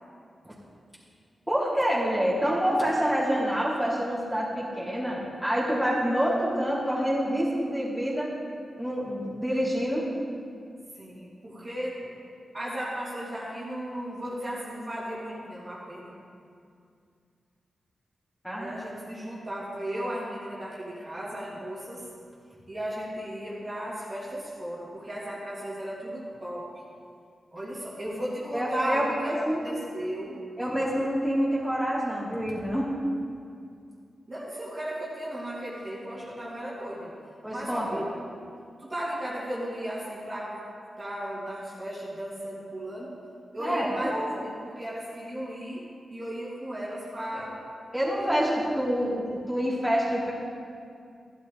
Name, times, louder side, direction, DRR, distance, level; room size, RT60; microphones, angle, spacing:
voice 1, 1.5-8.3 8.8-10.1 18.4-18.8 28.5-29.6 30.6-32.9 37.4-38.0 43.6-44.4 47.9-50.3, equal, ahead, -8 dB, 3.5 m, -27 dB
voice 2, 10.9-12.1 12.5-16.1 18.5-22.0 22.7-26.7 27.5-30.4 34.3-37.1 37.5-38.1 38.8-40.6 41.0-43.1 43.5-45.8 46.1-47.5, equal, 30° right, -7 dB, 2.9 m, -35 dB
14.5 x 12.0 x 4.0 m, 2.3 s
wide cardioid pair, 95°, 0 cm